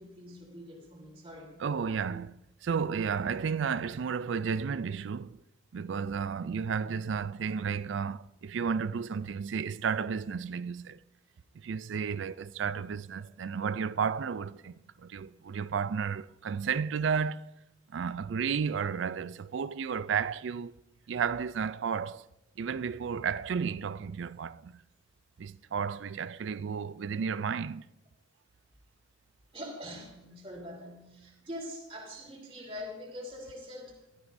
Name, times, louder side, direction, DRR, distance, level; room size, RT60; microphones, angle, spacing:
voice 1, 0.0-1.6 29.5-34.0, left 1 dB, 30° right, 3.3 m, -44 dB
voice 2, 1.6-5.4 5.7-11.0 11.5-17.5 17.9-20.7 21.1-22.3 22.6-24.8 25.4-27.9, right 6 dB, 70° right, 0.4 m, -32 dB
17.0 x 13.0 x 2.7 m
head